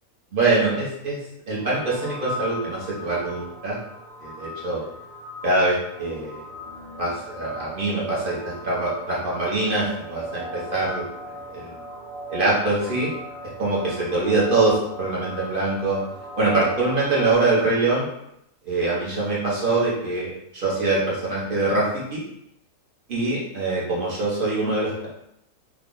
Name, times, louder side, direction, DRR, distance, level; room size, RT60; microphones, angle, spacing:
voice 1, 0.3-1.2 1.5-3.8 4.2-4.8 5.4-6.4 7.0-11.0 11.5-11.7 12.3-13.1 13.6-16.0 16.4-18.1 18.6-20.3 20.5-22.2 23.1-25.1, right 2 dB, 40° right, -7 dB, 1.0 m, -23 dB
sound 1, 1.6-17.3, equal, 75° right, 1.6 m, -38 dB
2.9 x 2.4 x 3.7 m, 0.78 s
omnidirectional pair, 1.6 m